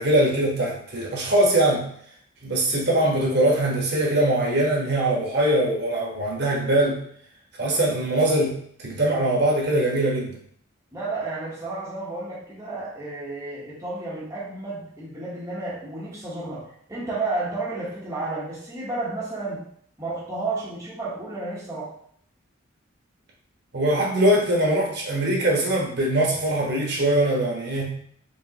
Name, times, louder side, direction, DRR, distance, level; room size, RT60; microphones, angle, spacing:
voice 1, 0.0-1.9 2.4-7.0 7.6-10.3 23.7-27.9, right 1 dB, 50° right, -3 dB, 1.2 m, -22 dB
voice 2, 10.9-19.7 20.0-21.9, right 2 dB, 15° right, -7 dB, 1.0 m, -32 dB
5.0 x 3.2 x 2.9 m, 0.62 s
head